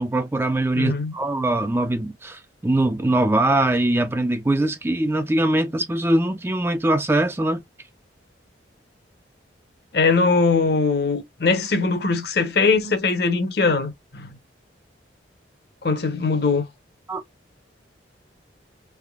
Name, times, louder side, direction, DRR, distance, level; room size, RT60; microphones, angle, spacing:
voice 1, 0.0-7.6 17.1-17.2, right 1 dB, 10° right, 0.3 m, -22 dB
voice 2, 0.7-1.1 9.9-14.4 15.8-16.6, left 4 dB, 55° left, 0.8 m, -21 dB
3.4 x 3.2 x 2.3 m
head